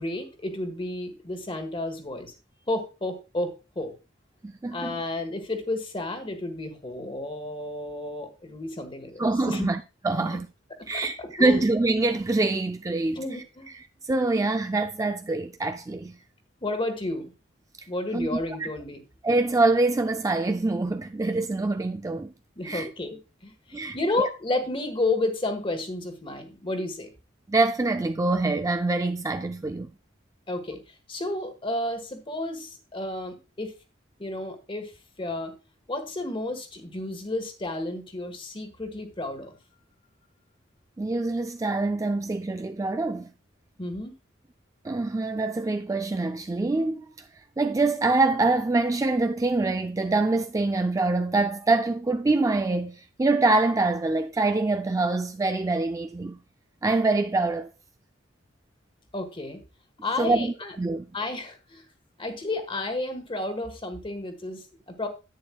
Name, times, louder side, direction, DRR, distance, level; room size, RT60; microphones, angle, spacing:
voice 1, 0.0-2.3 2.7-4.0 4.7-9.7 10.2-10.4 10.9-11.6 13.1-13.7 16.6-17.3 17.9-19.0 22.6-27.1 30.5-30.8 31.1-33.7 34.2-34.9 35.2-35.5 35.9-39.5 43.8-44.1 59.1-59.6 60.0-60.7 61.1-61.8 62.2-65.1, left 2 dB, 25° left, 1.3 m, -32 dB
voice 2, 4.4-5.0 9.2-10.5 10.9-13.2 13.7-16.1 17.8-17.9 18.1-18.4 19.2-22.3 22.6-22.9 23.7-24.3 27.5-29.9 41.0-43.3 44.8-47.1 47.6-56.4 56.8-57.7 60.2-61.1, right 2 dB, 15° right, 0.4 m, -25 dB
10.5 x 8.8 x 2.2 m
head